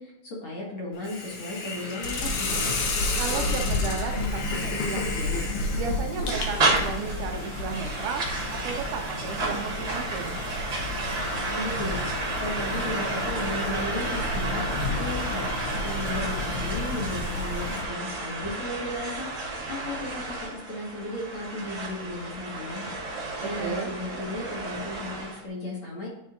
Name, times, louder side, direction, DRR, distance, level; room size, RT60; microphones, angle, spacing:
voice 1, 0.0-2.7 11.5-12.0 12.4-26.1, left 1 dB, 45° left, -5 dB, 2.1 m, -35 dB
Hiss, 1.0-6.9, left 4 dB, 65° left, 1.4 m, -31 dB
sound 1, 2.0-17.8, left 2 dB, 85° left, 1.2 m, -33 dB
voice 2, 3.2-5.5 5.7-10.4 23.4-24.0, right 6 dB, 80° right, 4 dB, 2.2 m, -34 dB
sound 2, 6.3-25.4, right 2 dB, 40° right, 1.6 m, -32 dB
10.0 x 4.4 x 2.5 m, 0.89 s
omnidirectional pair, 3.7 m